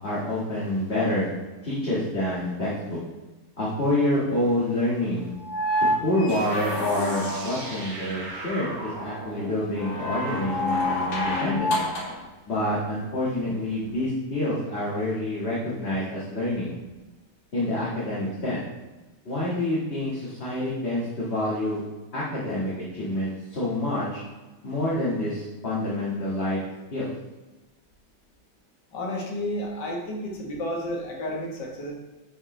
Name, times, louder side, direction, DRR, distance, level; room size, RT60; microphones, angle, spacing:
voice 1, 0.0-1.3 1.6-3.0 3.6-5.3 6.0-11.8 12.5-16.7 17.5-18.6 19.3-21.8 22.1-24.2 24.6-26.6 26.9-27.1, left 1 dB, 35° left, -9 dB, 1.9 m, -27 dB
sound 1, 5.4-7.9 9.8-12.2 13.9-14.0, left 1 dB, 65° left, 1.6 m, -28 dB
sound 2, 6.3-11.6, right 2 dB, 60° right, 1.7 m, -40 dB
voice 2, 28.9-31.9, left 1 dB, 85° left, -1 dB, 2.1 m, -31 dB
10.0 x 5.0 x 3.2 m, 1.1 s
omnidirectional pair, 1.8 m